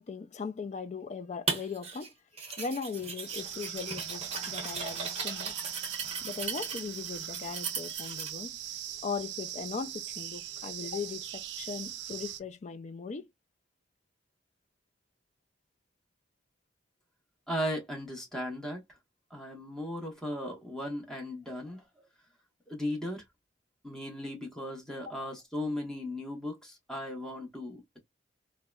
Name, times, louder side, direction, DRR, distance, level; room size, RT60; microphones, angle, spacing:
voice 1, 0.0-2.1 2.5-5.7 6.2-8.6 9.0-13.3, left 5 dB, 35° left, 0.3 m, -39 dB
sound 1, 1.5-2.1 2.4-8.3, right 5 dB, 35° right, 0.8 m, -37 dB
sound 2, 3.3-12.4, right 11 dB, 60° right, 0.3 m, -40 dB
voice 2, 17.5-18.8 19.3-21.8 22.7-23.2 23.8-28.0, left 1 dB, 5° left, 1.0 m, -37 dB
3.7 x 2.1 x 2.3 m
head